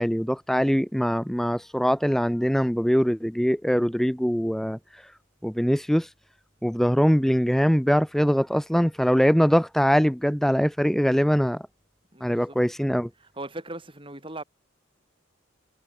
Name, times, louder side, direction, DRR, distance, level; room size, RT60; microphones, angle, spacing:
voice 1, 0.0-4.8 5.4-6.1 6.6-11.6 12.2-13.1, equal, ahead, 0.8 m, -22 dB
voice 2, 12.1-12.6 13.2-14.4, right 2 dB, 25° right, 6.0 m, -38 dB
head